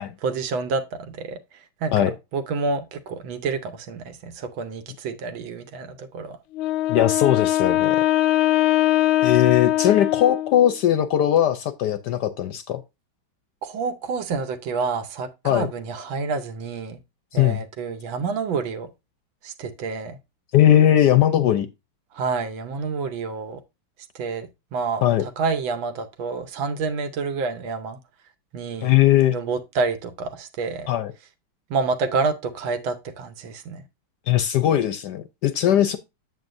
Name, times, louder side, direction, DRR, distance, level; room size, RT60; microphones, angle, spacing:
voice 1, 0.2-1.4 1.8-2.0 2.3-6.4 13.6-17.0 17.3-18.9 19.4-20.2 22.1-23.6 24.1-28.0 28.5-28.9 29.3-30.9 31.7-33.8, right 4 dB, 75° right, 1.7 m, -28 dB
Wind instrument woodwind instrument, 6.5-10.8, left 14 dB, 90° left, 1.4 m, -21 dB
voice 2, 6.9-8.0 9.2-12.8 15.4-15.7 17.3-17.6 20.5-21.7 25.0-25.3 28.8-29.4 30.9-31.1 34.3-36.0, left 11 dB, 70° left, 1.0 m, -19 dB
7.9 x 7.7 x 2.6 m
omnidirectional pair, 2.2 m